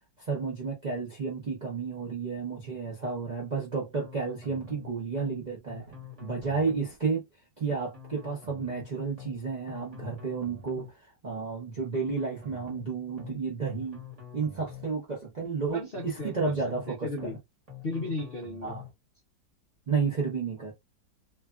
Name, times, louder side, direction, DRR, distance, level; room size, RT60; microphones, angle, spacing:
voice 1, 0.2-5.9 6.2-7.2 7.6-14.0 14.3-17.3 18.6-18.8 19.9-20.7, right 5 dB, 65° right, 0.4 m, -32 dB
sound 1, 3.9-4.9 5.2-5.4 5.7-6.9 7.9-8.9 9.2-9.4 9.7-10.9 11.9-12.9 13.2-13.4 13.7-14.9 15.9-16.9 17.2-17.4 17.7-18.9, left 7 dB, 25° right, 0.9 m, -46 dB
voice 2, 15.7-16.6 16.9-17.4 17.8-18.7, left 2 dB, 50° left, 0.7 m, -35 dB
3.2 x 2.3 x 2.3 m
omnidirectional pair, 2.0 m